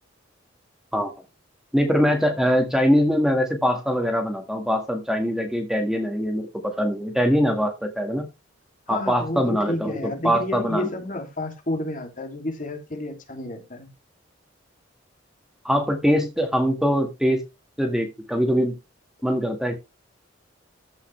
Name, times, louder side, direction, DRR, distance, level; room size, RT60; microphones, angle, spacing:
voice 1, 1.7-8.3 8.9-10.0 10.2-10.9 15.6-17.4 17.8-18.7 19.2-19.7, equal, ahead, 1.7 m, -22 dB
voice 2, 8.9-13.9, left 1 dB, 40° left, 2.6 m, -31 dB
14.5 x 5.6 x 3.2 m
head